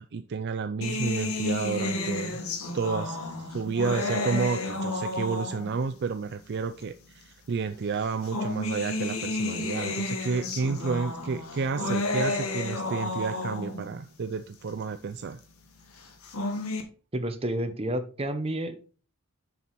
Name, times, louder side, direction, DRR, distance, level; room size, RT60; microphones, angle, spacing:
voice 1, 0.0-2.4 2.7-15.4, right 5 dB, 55° right, 10 dB, 0.4 m, -31 dB
sound 1, 0.8-5.9 6.8-6.9 8.0-13.9 16.0-16.8, left 2 dB, 85° left, 1.5 m, -31 dB
voice 2, 17.1-19.0, right 1 dB, 25° right, 8 dB, 0.9 m, -30 dB
7.1 x 6.1 x 4.1 m, 0.37 s
head